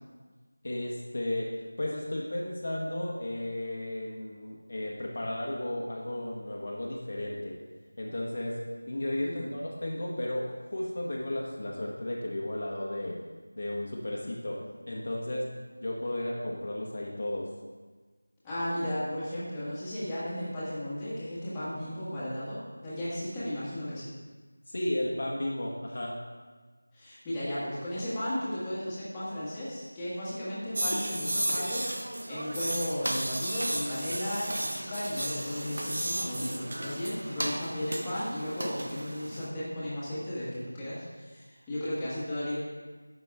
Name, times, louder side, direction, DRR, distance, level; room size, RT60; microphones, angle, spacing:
voice 1, 0.6-1.5 1.8-7.5 8.0-8.6 8.9-13.2 13.6-14.6 14.9-15.5 15.8-17.5 24.7-26.1, left 1 dB, 50° left, -2 dB, 1.3 m, -34 dB
voice 2, 9.2-9.5 18.4-24.1 26.9-31.9 32.3-42.6, equal, 10° left, -12 dB, 1.6 m, -35 dB
sound 1, 30.7-39.5, right 1 dB, 65° right, 0.9 m, -34 dB
9.8 x 6.0 x 3.5 m, 1.4 s
figure-of-eight pair, 175°, 0 cm